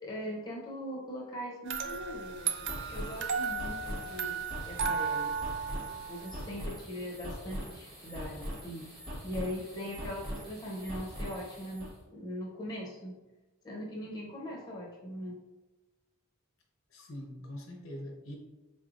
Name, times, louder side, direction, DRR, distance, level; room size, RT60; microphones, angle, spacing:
voice 1, 0.0-5.4 6.1-8.9 9.2-13.2 13.6-15.4, equal, 20° left, -3 dB, 0.7 m, -40 dB
sound 1, 1.7-6.7, right 6 dB, 55° right, 0.3 m, -35 dB
sound 2, 2.2-11.9, equal, 25° right, 1.2 m, -42 dB
voice 2, 16.9-18.4, left 1 dB, 65° left, 1 dB, 0.7 m, -43 dB
4.2 x 3.2 x 2.4 m, 1.1 s
head